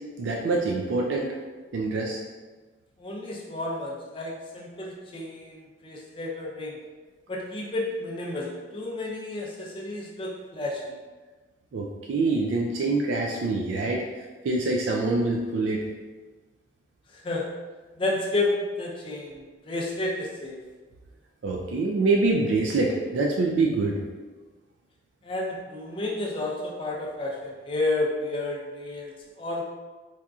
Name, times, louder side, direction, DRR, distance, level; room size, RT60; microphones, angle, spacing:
voice 1, 0.2-1.3 1.7-2.2 11.7-14.0 14.4-15.8 21.4-23.9, right 3 dB, 85° right, -1 dB, 0.4 m, -25 dB
voice 2, 3.0-6.8 7.3-11.0 17.2-17.5 18.0-20.6 25.2-29.6, left 2 dB, 30° left, -2 dB, 0.5 m, -31 dB
4.1 x 2.5 x 2.3 m, 1.3 s
head